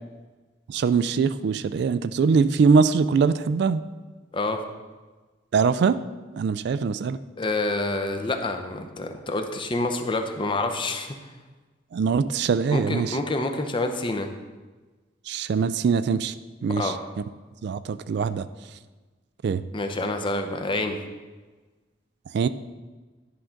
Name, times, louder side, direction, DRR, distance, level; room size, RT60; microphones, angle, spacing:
voice 1, 0.7-3.8 5.5-6.0 6.3-7.2 11.9-13.2 15.3-16.3 16.6-16.9 17.6-18.5 19.4-19.6 22.3-22.5, right 5 dB, 60° right, 14 dB, 0.3 m, -22 dB
voice 2, 7.4-11.2 12.7-14.3 16.8-17.0 19.7-21.0, left 2 dB, 25° left, 5 dB, 0.6 m, -27 dB
10.5 x 3.8 x 5.8 m, 1.3 s
head